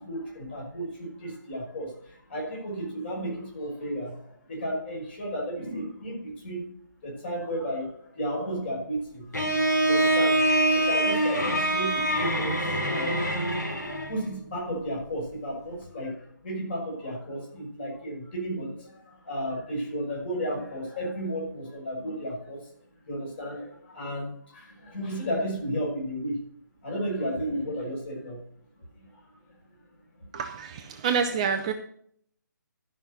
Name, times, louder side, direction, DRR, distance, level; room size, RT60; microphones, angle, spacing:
voice 1, 0.0-6.6 7.0-13.6 14.0-22.6 23.0-26.4 26.8-28.4 29.1-29.2, equal, 35° left, -2 dB, 5.8 m, -33 dB
Bowed string instrument, 9.3-14.2, right 1 dB, 60° left, 3.5 m, -24 dB
voice 2, 30.3-31.7, right 6 dB, 20° right, 5 dB, 0.6 m, -27 dB
12.5 x 5.9 x 6.6 m, 0.64 s
figure-of-eight pair, 145°, 10 cm